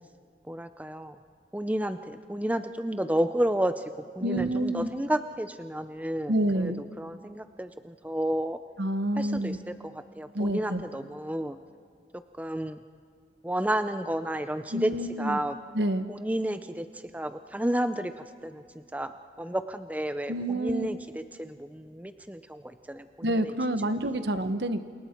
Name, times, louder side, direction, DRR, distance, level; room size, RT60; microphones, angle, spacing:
voice 1, 0.5-1.2 1.5-8.6 9.2-11.6 12.4-12.8 13.4-14.9 15.2-15.6 16.1-23.5 24.1-24.3, right 1 dB, 10° right, 9 dB, 0.6 m, -31 dB
voice 2, 4.2-4.9 6.3-6.8 8.8-9.6 10.3-10.8 14.7-15.4 15.7-16.1 20.3-20.9 23.2-24.8, right 1 dB, 80° right, 9 dB, 1.2 m, -28 dB
28.5 x 28.0 x 4.5 m, 2.2 s
head